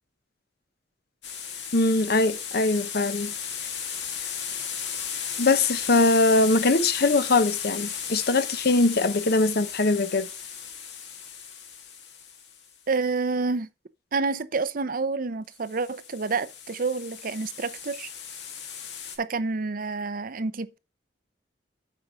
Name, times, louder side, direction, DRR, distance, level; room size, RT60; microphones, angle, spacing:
sound 1, 1.2-12.7 15.6-19.2, left 7 dB, 80° left, 1.9 m, -35 dB
voice 1, 1.7-3.3 5.4-10.3, left 2 dB, 60° left, 0.9 m, -22 dB
voice 2, 12.9-13.7 14.1-18.1 19.2-20.8, right 4 dB, 50° right, 0.6 m, -28 dB
8.4 x 4.9 x 5.5 m
head